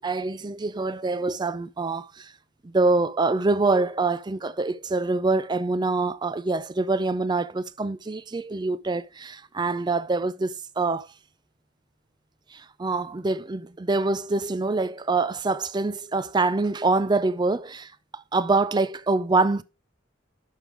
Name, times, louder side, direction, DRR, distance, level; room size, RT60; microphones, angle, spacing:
voice 1, 0.0-2.3 2.6-11.1 12.5-19.6, right 3 dB, 20° right, 0.4 m, -25 dB
11.0 x 5.2 x 3.5 m
head